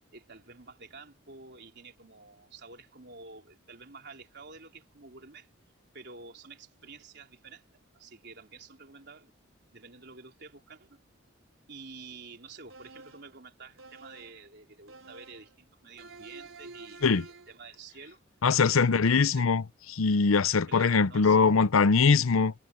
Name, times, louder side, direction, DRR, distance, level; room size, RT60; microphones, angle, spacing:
voice 1, 0.1-5.5 5.9-7.6 7.9-9.3 9.7-11.0 11.7-18.2 18.6-19.6 20.7-21.5, right 4 dB, 55° right, 3.9 m, -49 dB
sound 1, 12.7-13.4 13.8-14.4 14.9-15.5 16.0-17.6, right 3 dB, 75° right, 3.7 m, -49 dB
voice 2, 18.4-19.6 19.9-22.5, left 5 dB, 85° left, 0.7 m, -22 dB
head